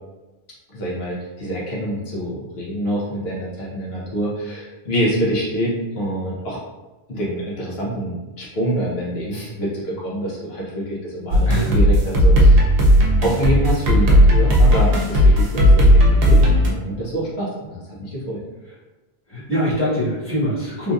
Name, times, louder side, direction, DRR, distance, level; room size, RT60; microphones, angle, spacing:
voice 1, 0.7-6.6 7.1-12.6 13.2-18.4, right 1 dB, 80° left, -5 dB, 1.0 m, -26 dB
sound 1, 11.3-16.7, equal, 75° right, 0.8 m, -14 dB
voice 2, 19.3-20.9, equal, 15° left, -9 dB, 1.1 m, -23 dB
3.1 x 2.5 x 2.4 m, 1.1 s
omnidirectional pair, 1.0 m